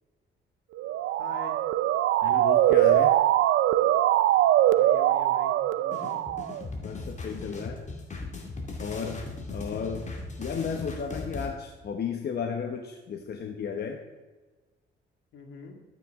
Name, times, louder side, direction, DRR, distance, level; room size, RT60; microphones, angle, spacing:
Motor vehicle (road) / Siren, 0.8-6.6, right 13 dB, 75° right, 0.5 m, -22 dB
voice 1, 1.2-1.6 4.7-6.3 15.3-15.8, left 4 dB, 75° left, 3 dB, 2.1 m, -45 dB
voice 2, 2.2-3.1 6.7-7.8 8.8-9.2 9.5-10.1 10.4-14.0, left 6 dB, 55° left, 4 dB, 1.1 m, -34 dB
sound 1, 5.9-11.5, left 3 dB, 35° left, 2.2 m, -38 dB
12.0 x 9.2 x 3.7 m, 1.3 s
cardioid pair, 90°, 20 cm